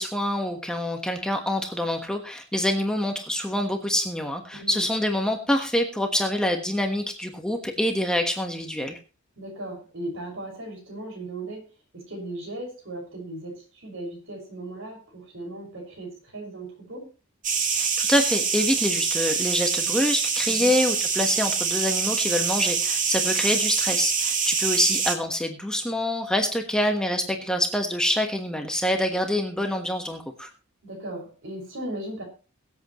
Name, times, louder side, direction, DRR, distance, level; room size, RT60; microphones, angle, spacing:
voice 1, 0.0-9.0 17.7-30.5, left 1 dB, 5° left, 3 dB, 1.3 m, -26 dB
voice 2, 4.5-4.8 9.4-11.7 11.9-17.1 20.4-20.7 23.2-23.6 30.8-32.2, right 1 dB, 65° right, 1 dB, 6.1 m, -37 dB
sound 1, 17.4-25.2, right 6 dB, 40° right, 2.0 m, -25 dB
22.5 x 8.1 x 3.1 m, 0.34 s
head